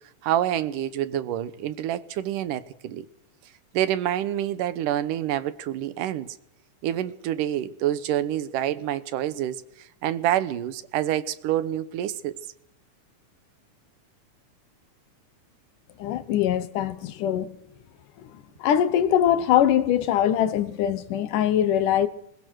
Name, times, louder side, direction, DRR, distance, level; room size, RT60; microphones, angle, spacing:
voice 1, 0.2-3.1 3.7-6.4 6.8-9.6 10.0-12.3, right 12 dB, 90° right, 2.6 m, -27 dB
voice 2, 16.0-17.5 18.2-22.1, left 10 dB, 85° left, 2.7 m, -22 dB
21.5 x 21.0 x 6.3 m
omnidirectional pair, 3.6 m